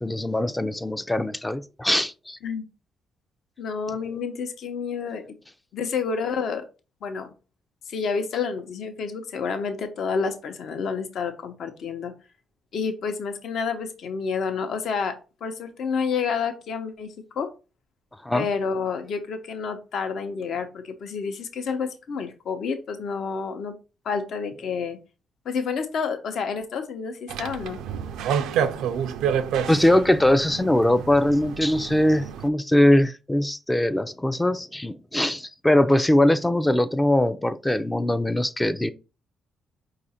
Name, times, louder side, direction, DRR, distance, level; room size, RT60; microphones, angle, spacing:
voice 1, 0.0-2.4 18.2-18.5 29.7-38.9, left 1 dB, 10° left, 0.3 m, -21 dB
voice 2, 3.6-5.2 5.7-6.6 7.0-7.3 7.9-12.1 12.7-15.2 15.4-17.5 18.3-23.7 24.0-25.0 25.4-27.8, left 5 dB, 65° left, 0.7 m, -29 dB
sound 1, 27.3-32.5, right 8 dB, 85° right, 0.4 m, -29 dB
4.8 x 2.5 x 4.2 m
cardioid pair, 90°, 0 cm